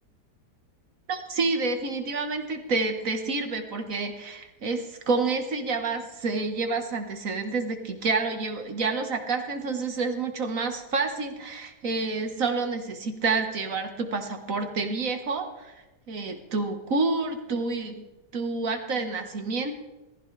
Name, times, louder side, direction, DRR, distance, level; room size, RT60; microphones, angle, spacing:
voice 1, 1.1-15.8 16.1-18.0 18.3-19.7, right 3 dB, 50° right, 5 dB, 1.8 m, -28 dB
18.5 x 15.0 x 3.4 m, 1.1 s
omnidirectional pair, 1.8 m